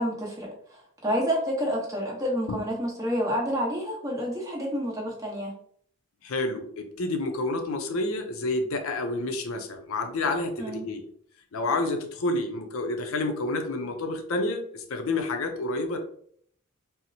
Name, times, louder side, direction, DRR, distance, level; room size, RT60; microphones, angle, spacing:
voice 1, 0.0-5.5 10.6-10.9, equal, 15° right, -4 dB, 0.9 m, -29 dB
voice 2, 6.2-11.1 11.5-16.0, left 2 dB, 65° left, 5 dB, 0.4 m, -29 dB
4.1 x 2.0 x 2.6 m, 0.62 s
head